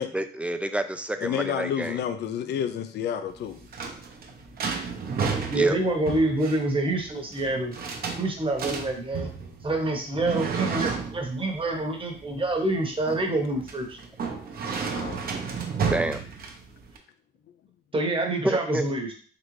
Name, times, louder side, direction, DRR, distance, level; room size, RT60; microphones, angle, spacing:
voice 1, 0.0-2.0 5.6-5.8 15.9-16.2 18.4-18.8, right 1 dB, 5° right, 9 dB, 0.4 m, -29 dB
voice 2, 1.2-3.6 14.9-15.2, left 9 dB, 60° left, 8 dB, 0.4 m, -30 dB
sound 1, 3.3-17.0, right 5 dB, 50° right, 0.8 m, -32 dB
voice 3, 5.5-7.8 8.2-9.3 9.6-14.0 17.9-19.1, right 2 dB, 25° right, 2 dB, 1.1 m, -26 dB
3.9 x 3.2 x 3.1 m, 0.43 s
cardioid pair, 90°, 20 cm